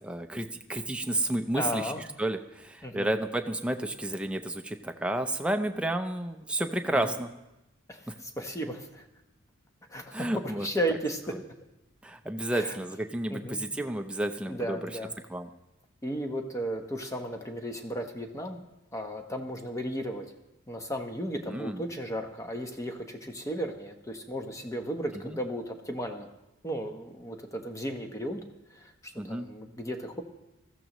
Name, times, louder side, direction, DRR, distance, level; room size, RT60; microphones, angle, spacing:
voice 1, 0.0-1.9 2.2-7.3 8.1-8.2 10.1-10.7 11.3-11.4 12.0-14.9 15.3-15.5 21.5-21.8 25.2-25.4 29.2-29.5, right 1 dB, 5° right, 5 dB, 0.6 m, -31 dB
voice 2, 1.5-2.0 2.8-3.1 6.9-7.1 7.9-9.1 9.9-11.2 12.5-12.8 13.3-13.6 14.5-15.1 16.0-18.6 18.9-20.3 20.7-26.3 26.6-28.4 28.7-30.2, equal, 15° left, 4 dB, 1.0 m, -35 dB
20.0 x 14.0 x 3.1 m, 0.96 s
head